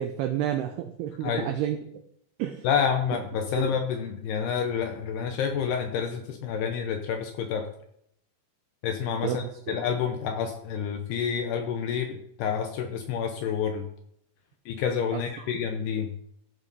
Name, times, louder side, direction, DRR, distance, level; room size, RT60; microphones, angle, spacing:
voice 1, 0.0-1.8 2.4-2.7 3.5-3.8 9.2-9.4 15.1-15.5, right 11 dB, 85° right, 6 dB, 2.3 m, -30 dB
voice 2, 2.6-7.7 8.8-13.9 14.7-16.1, left 7 dB, 75° left, 5 dB, 2.5 m, -29 dB
15.0 x 6.1 x 5.4 m, 0.71 s
omnidirectional pair, 5.4 m